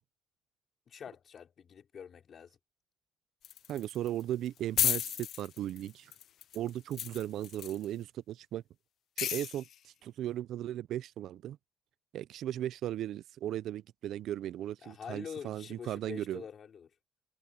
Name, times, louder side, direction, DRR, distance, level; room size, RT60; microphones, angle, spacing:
voice 1, 0.9-2.6 14.8-16.9, left 7 dB, 55° left, 4.3 m, -46 dB
sound 1, 3.4-4.2 4.5-4.6 4.8-7.8 9.2-9.7, left 11 dB, 70° left, 0.4 m, -33 dB
voice 2, 3.7-6.1 6.5-8.6 9.2-11.6 12.1-16.4, right 12 dB, 80° right, 0.4 m, -37 dB
cardioid pair, 90°, 0 cm